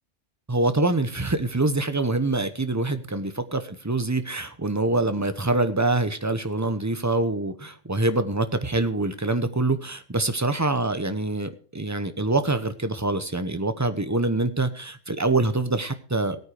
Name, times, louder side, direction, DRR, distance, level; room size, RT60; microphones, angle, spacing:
voice 1, 0.5-16.4, right 2 dB, 15° right, 10 dB, 0.8 m, -25 dB
16.5 x 9.1 x 5.0 m, 0.42 s
omnidirectional pair, 1.2 m